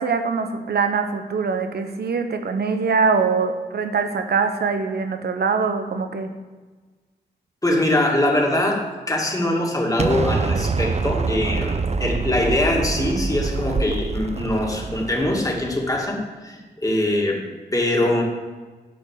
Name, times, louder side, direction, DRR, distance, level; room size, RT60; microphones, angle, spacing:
voice 1, 0.0-6.3, right 5 dB, 65° right, 7 dB, 1.0 m, -23 dB
voice 2, 7.6-17.4 17.7-18.2, left 1 dB, 20° left, -1 dB, 2.4 m, -22 dB
Explosion, 10.0-16.0, right 4 dB, 40° right, 0.7 m, -25 dB
10.5 x 5.2 x 6.6 m, 1.3 s
cardioid pair, 55°, 18 cm